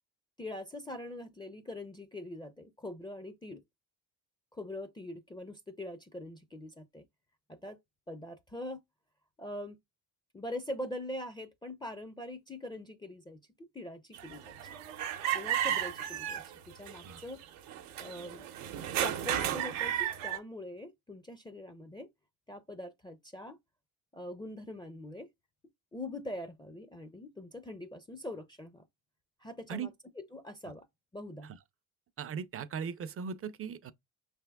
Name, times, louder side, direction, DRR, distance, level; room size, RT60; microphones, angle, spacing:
voice 1, 0.4-3.6 4.5-7.0 7.5-7.8 8.1-8.8 9.4-9.8 10.3-14.8 15.3-17.4 18.0-18.5 18.9-22.1 22.5-23.6 24.1-25.3 25.9-28.8 29.4-30.9 31.1-31.5, left 1 dB, 10° left, 0.6 m, -43 dB
sound 1, 14.1-20.4, right 10 dB, 85° right, 0.9 m, -34 dB
voice 2, 32.2-33.9, right 6 dB, 35° right, 0.6 m, -38 dB
5.5 x 3.5 x 2.3 m
supercardioid pair, 65°, 41 cm